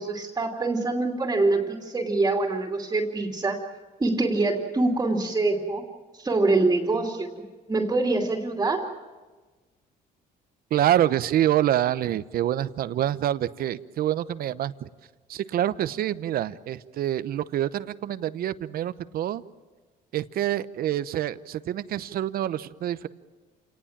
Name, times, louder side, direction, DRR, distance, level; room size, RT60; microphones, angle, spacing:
voice 1, 0.0-3.6 4.0-5.8 6.2-7.3 7.7-8.9, right 2 dB, 20° right, 0 dB, 2.8 m, -24 dB
voice 2, 10.7-14.9 15.3-19.4 20.1-23.1, right 12 dB, 60° right, 15 dB, 0.9 m, -26 dB
28.0 x 19.0 x 7.4 m, 1.3 s
cardioid pair, 110°, 17 cm